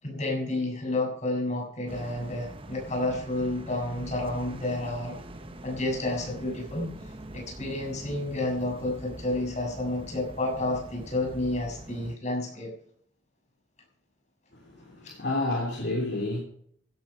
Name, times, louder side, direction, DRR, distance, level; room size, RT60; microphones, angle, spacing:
voice 1, 0.0-5.2 5.6-6.9 7.3-12.7, left 2 dB, 35° left, 7.0 m, -30 dB
sound 1, 1.9-12.2, right 1 dB, 25° right, 1.1 m, -43 dB
voice 2, 14.6-16.4, left 2 dB, 55° left, 3.4 m, -30 dB
16.5 x 9.5 x 5.9 m
head